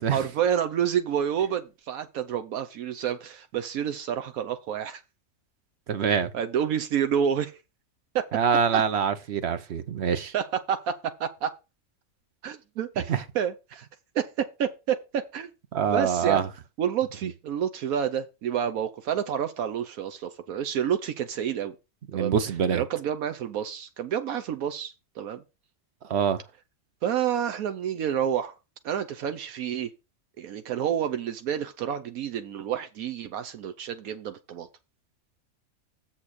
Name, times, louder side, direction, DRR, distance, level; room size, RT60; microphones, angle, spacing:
voice 1, 0.1-5.0 6.3-7.5 8.1-8.3 8.7-8.8 10.3-11.5 12.4-13.9 14.1-15.5 15.9-16.4 16.8-21.7 22.1-22.3 22.7-25.4 27.0-28.6 28.8-29.9 30.4-34.7, right 9 dB, 80° right, 1.1 m, -29 dB
voice 2, 5.9-6.3 8.3-10.3 13.1-13.2 15.7-16.5 22.1-22.8 26.1-26.4, right 7 dB, 55° right, 1.0 m, -25 dB
7.3 x 4.2 x 6.5 m
omnidirectional pair, 1.5 m